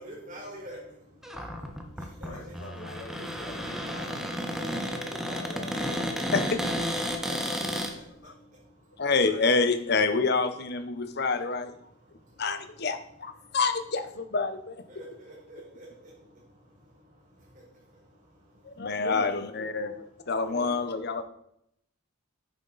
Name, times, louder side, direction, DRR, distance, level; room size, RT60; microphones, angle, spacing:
voice 1, 0.0-2.6 4.0-4.1 4.5-5.0 6.9-9.1 10.9-11.3 11.8-13.6 14.9-16.9 17.4-19.4 19.8-20.9 21.2-21.3, equal, 40° right, -4 dB, 4.1 m, -49 dB
Cupboard open or close, 1.2-7.9, equal, ahead, 0.8 m, -32 dB
voice 2, 2.2-4.3 5.0-6.7, left 1 dB, 85° left, -7 dB, 2.3 m, -44 dB
voice 3, 9.0-11.7 12.4-14.8 18.6-21.2, left 4 dB, 50° left, 10 dB, 0.8 m, -27 dB
9.2 x 7.1 x 4.0 m, 0.74 s
head